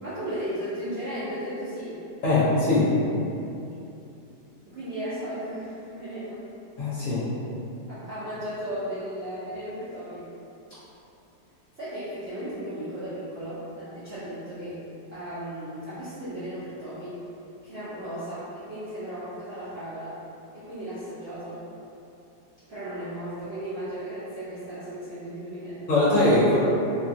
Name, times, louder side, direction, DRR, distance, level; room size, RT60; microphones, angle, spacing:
voice 1, 0.0-2.0 4.7-6.4 7.9-10.3 11.8-14.8 15.1-17.2 17.6-20.2 20.5-21.6 22.7-25.9, equal, 55° right, -14 dB, 0.7 m, -35 dB
voice 2, 2.2-2.9 6.8-7.2 25.9-26.6, left 2 dB, 60° left, -10 dB, 1.0 m, -21 dB
3.0 x 2.3 x 2.6 m, 2.7 s
omnidirectional pair, 1.9 m